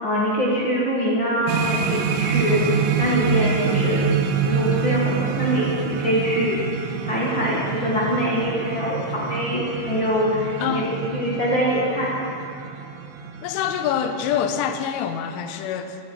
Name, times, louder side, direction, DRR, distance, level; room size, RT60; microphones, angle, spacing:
voice 1, 0.0-2.6 3.0-4.1 4.4-6.7 7.0-12.1, equal, 55° left, -6 dB, 1.3 m, -23 dB
sound 1, 1.5-14.8, right 6 dB, 80° right, 3.3 m, -26 dB
voice 2, 13.4-16.0, left 8 dB, 80° left, 8 dB, 3.2 m, -25 dB
16.5 x 13.5 x 5.8 m, 2.6 s
omnidirectional pair, 5.8 m